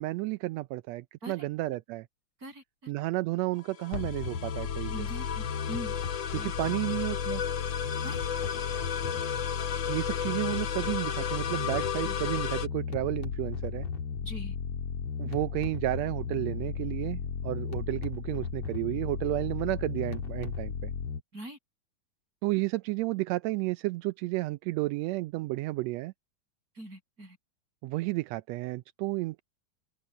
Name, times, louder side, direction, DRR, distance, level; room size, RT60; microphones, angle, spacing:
voice 1, 0.0-2.1 2.9-5.1 6.3-7.4 9.9-13.9 15.2-20.9 22.4-26.1 27.8-29.4, right 19 dB, 80° right, 1.6 m, -32 dB
voice 2, 2.4-2.9 4.9-5.9 6.3-6.5 8.0-8.2 12.0-12.2 14.2-14.5 21.3-21.6 26.7-27.4, right 1 dB, 25° right, 8.4 m, -42 dB
sound 1, 3.6-12.7, left 8 dB, 85° left, 1.0 m, -35 dB
sound 2, 3.9-21.2, left 6 dB, 60° left, 2.7 m, -35 dB
open air
omnidirectional pair, 3.5 m